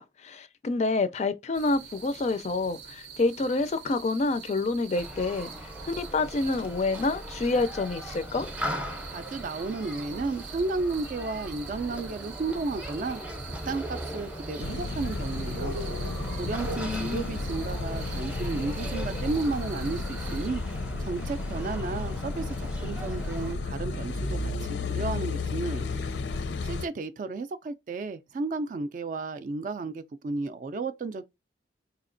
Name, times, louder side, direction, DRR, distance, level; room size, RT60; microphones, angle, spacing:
voice 1, 0.0-8.5 16.9-17.2, left 3 dB, 40° left, 0.4 m, -28 dB
sound 1, 1.5-20.5, right 5 dB, 90° right, 0.6 m, -44 dB
Human group actions, 4.9-23.5, equal, 5° right, 0.6 m, -39 dB
voice 2, 9.1-15.8 16.4-20.6 21.0-26.0 26.6-31.2, right 3 dB, 45° right, 0.3 m, -33 dB
Car passing by / Idling / Accelerating revving vroom, 14.6-26.9, left 3 dB, 85° left, 0.6 m, -33 dB
4.1 x 2.9 x 2.5 m
head